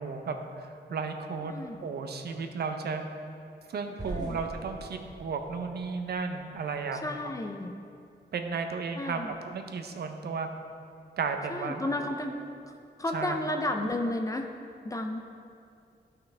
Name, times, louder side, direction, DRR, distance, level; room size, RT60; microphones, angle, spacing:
voice 1, 0.0-1.5 1.8-3.0 3.7-7.0 8.3-10.5 11.2-12.1 13.1-13.4, right 5 dB, 65° right, 6 dB, 0.7 m, -34 dB
voice 2, 1.4-1.8 4.1-4.4 6.9-7.7 8.9-9.4 11.5-12.4 12.7-12.8 13.0-14.5 14.8-15.2, left 1 dB, 20° left, 4 dB, 0.4 m, -32 dB
sound 1, 4.0-7.0, right 1 dB, 20° right, 0.8 m, -43 dB
12.5 x 5.8 x 3.3 m, 2.4 s
wide cardioid pair, 175°, 18 cm